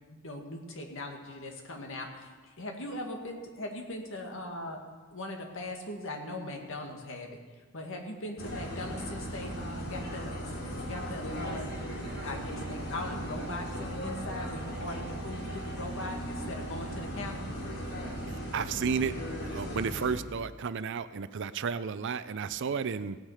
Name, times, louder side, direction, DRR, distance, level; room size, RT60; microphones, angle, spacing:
voice 1, 0.1-4.8 5.1-10.3 10.9-11.7 12.0-17.4, left 1 dB, 65° left, 2 dB, 2.0 m, -40 dB
sound 1, 8.4-20.2, equal, 85° left, 2.9 m, -37 dB
voice 2, 18.3-19.2 19.4-23.2, right 6 dB, 60° right, 14 dB, 0.5 m, -32 dB
17.0 x 9.4 x 4.9 m, 1.4 s
head